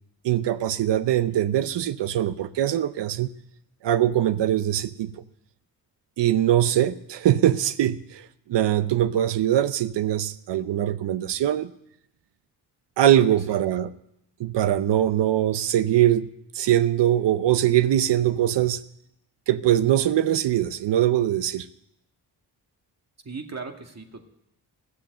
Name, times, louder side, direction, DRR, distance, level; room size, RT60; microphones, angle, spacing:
voice 1, 0.2-3.3 3.8-5.1 6.2-11.7 13.0-13.9 14.4-16.3 16.5-18.8 19.5-21.7, right 12 dB, 70° right, 0.7 m, -22 dB
voice 2, 13.1-13.6 23.2-24.2, right 4 dB, 35° right, 2.0 m, -38 dB
15.0 x 7.4 x 7.8 m
supercardioid pair, 50°, 44 cm